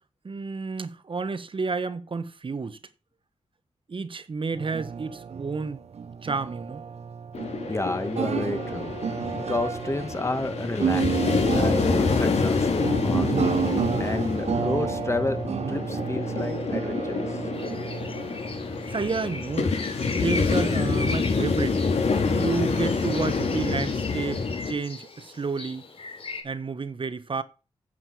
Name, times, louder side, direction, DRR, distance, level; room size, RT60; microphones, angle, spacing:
voice 1, 0.2-2.8 3.9-5.8 6.2-6.8 18.9-19.8 20.2-21.8 22.3-25.9 26.4-27.4, right 4 dB, 50° right, 1.2 m, -30 dB
sound 1, 4.5-19.2, right 6 dB, 70° right, 0.9 m, -31 dB
sound 2, 7.3-24.7, left 4 dB, 80° left, 4.3 m, -27 dB
voice 2, 7.7-9.0 9.4-13.3 14.0-15.4 15.7-17.2, left 2 dB, 25° left, 1.8 m, -30 dB
sound 3, 17.5-26.4, left 3 dB, 60° left, 3.4 m, -39 dB
9.3 x 7.7 x 6.2 m
cardioid pair, 65°, 11 cm